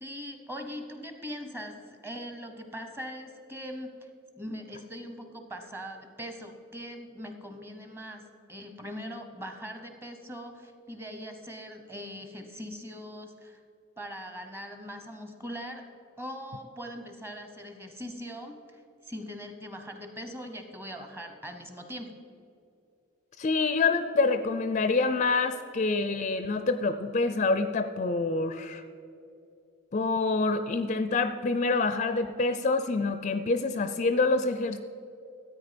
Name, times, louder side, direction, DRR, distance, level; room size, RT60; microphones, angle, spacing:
voice 1, 0.0-4.1 4.4-13.6 14.0-15.8 16.2-22.2, equal, 10° right, 6 dB, 1.0 m, -41 dB
voice 2, 23.4-28.8 29.9-34.8, left 3 dB, 35° left, 10 dB, 0.4 m, -26 dB
13.5 x 8.8 x 5.2 m, 2.6 s
head